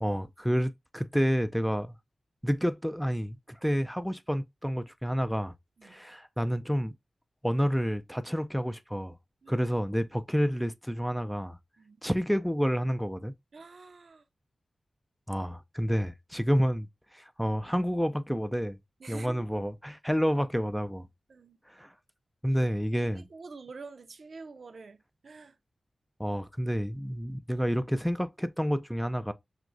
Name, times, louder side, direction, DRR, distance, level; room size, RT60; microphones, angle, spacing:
voice 1, 0.0-2.0 2.4-5.5 5.8-6.9 7.4-9.2 9.5-11.6 12.0-13.3 15.3-16.9 17.1-18.8 19.1-21.1 21.7-21.9 22.4-23.2 26.2-29.3, equal, ahead, 0.3 m, -29 dB
voice 2, 13.5-14.3 19.0-19.6 21.3-21.6 23.0-25.6, right 4 dB, 65° right, 0.5 m, -47 dB
5.9 x 2.1 x 2.5 m
wide cardioid pair, 80°, 0 cm